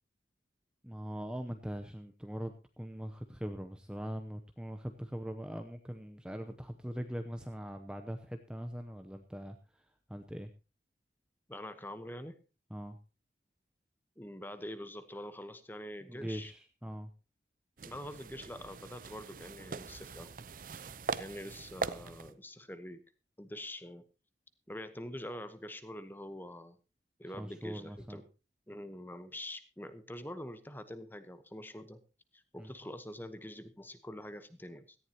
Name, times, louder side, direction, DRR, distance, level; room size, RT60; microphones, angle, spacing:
voice 1, 0.8-10.5 12.7-13.0 16.1-17.1 27.3-28.2 32.6-32.7, equal, 5° right, 6 dB, 0.7 m, -42 dB
voice 2, 11.5-12.4 14.2-16.5 17.8-20.3 21.1-23.0 23.4-24.0 24.7-26.8 27.2-28.2 28.7-32.0 32.3-35.0, left 1 dB, 10° left, 11 dB, 1.0 m, -45 dB
sound 1, 17.8-22.3, right 4 dB, 50° right, 0.6 m, -41 dB
17.5 x 14.0 x 2.9 m, 0.30 s
head